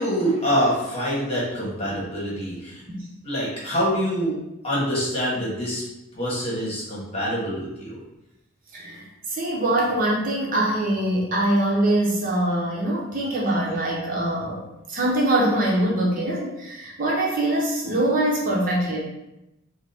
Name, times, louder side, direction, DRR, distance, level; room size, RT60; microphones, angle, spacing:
voice 1, 0.0-2.8 3.2-4.3 4.6-5.8 6.1-8.0, equal, 30° left, -6 dB, 1.3 m, -25 dB
voice 2, 8.7-19.0, right 1 dB, 40° right, -3 dB, 0.7 m, -23 dB
5.2 x 2.0 x 3.4 m, 0.92 s
head